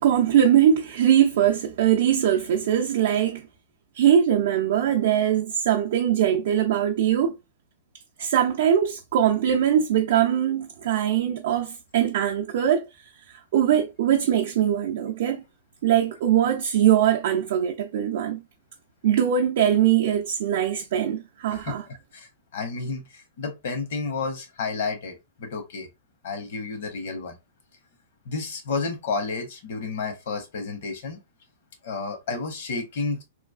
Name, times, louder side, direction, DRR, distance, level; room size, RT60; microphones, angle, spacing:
voice 1, 0.0-3.5 4.0-7.3 8.2-12.8 13.5-15.4 15.8-18.4 19.0-21.8, right 10 dB, 65° right, 0.4 m, -21 dB
voice 2, 21.5-25.9 26.2-27.4 28.3-31.2 31.8-33.2, left 4 dB, 65° left, 1.0 m, -31 dB
3.1 x 2.3 x 2.4 m
hypercardioid pair, 115°, 0 cm